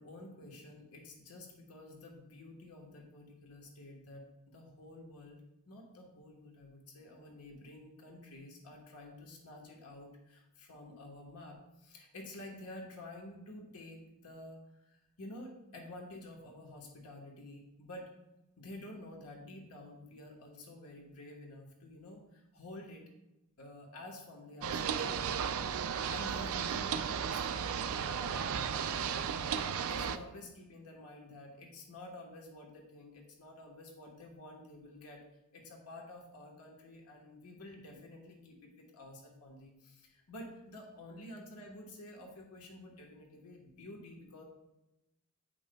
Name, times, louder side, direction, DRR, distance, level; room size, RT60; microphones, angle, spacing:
voice 1, 0.0-5.4 5.7-18.1 18.6-23.0 23.6-25.3 25.9-35.2 35.5-44.4, left 1 dB, 80° left, 0 dB, 1.3 m, -50 dB
sound 1, 24.6-30.2, right 7 dB, 65° right, 0.4 m, -34 dB
9.3 x 5.8 x 2.2 m, 0.94 s
head